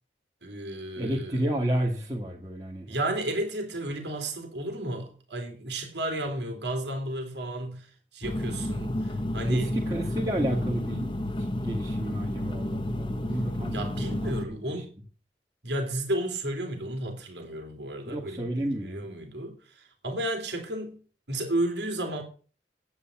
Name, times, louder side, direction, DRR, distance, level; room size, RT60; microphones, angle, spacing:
voice 1, 0.4-1.4 2.9-7.9 8.1-9.7 13.7-14.9 15.6-21.0 21.3-22.2, right 1 dB, 85° right, 3.0 m, -33 dB
voice 2, 1.0-3.0 9.5-11.3 11.6-13.8 14.2-14.8 18.1-19.1, right 1 dB, 20° right, 1.9 m, -31 dB
sound 1, 8.2-14.5, left 1 dB, 25° left, 0.9 m, -31 dB
9.7 x 9.3 x 6.0 m
head